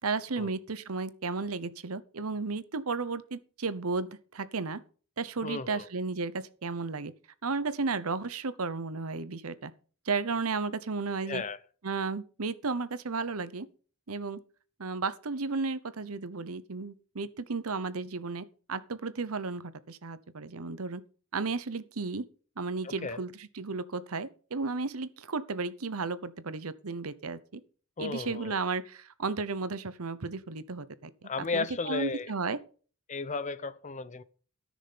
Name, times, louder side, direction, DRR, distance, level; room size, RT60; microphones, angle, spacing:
voice 1, 0.0-4.8 5.2-7.1 7.4-9.7 10.1-11.4 11.8-13.7 14.1-14.4 14.8-21.0 21.3-22.2 22.6-27.6 28.0-32.6, right 4 dB, 85° right, 0.9 m, -34 dB
voice 2, 5.4-5.9 11.2-11.6 22.8-23.2 28.0-28.6 31.2-32.3 33.1-34.2, left 4 dB, 35° left, 0.7 m, -34 dB
14.0 x 6.4 x 5.6 m
head